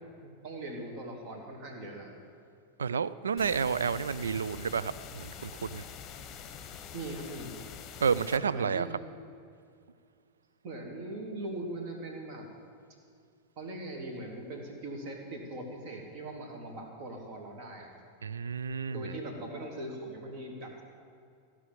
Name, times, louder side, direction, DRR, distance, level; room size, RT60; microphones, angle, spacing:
voice 1, 0.2-2.2 6.9-7.6 8.3-9.0 10.6-12.5 13.6-18.0 18.9-20.8, right 1 dB, 45° right, 2 dB, 2.3 m, -40 dB
voice 2, 2.8-5.8 8.0-8.9 18.2-19.1, right 6 dB, 70° right, 16 dB, 0.4 m, -30 dB
sound 1, 3.4-8.4, left 8 dB, 30° left, 0.9 m, -45 dB
15.0 x 6.2 x 9.0 m, 2.3 s
figure-of-eight pair, 90°, 0 cm